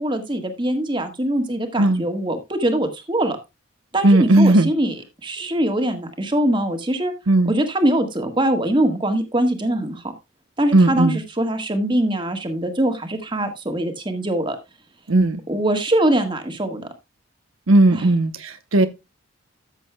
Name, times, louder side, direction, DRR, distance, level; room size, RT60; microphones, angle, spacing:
voice 1, 0.0-3.4 3.9-4.9 5.2-7.1 7.4-10.0 10.6-14.6 15.5-16.8 17.9-18.0, right 1 dB, 25° right, 1.5 m, -22 dB
voice 2, 4.0-4.7 7.3-7.5 10.7-11.2 15.1-15.4 17.7-18.9, right 2 dB, 75° right, 0.9 m, -16 dB
13.5 x 7.6 x 2.2 m
head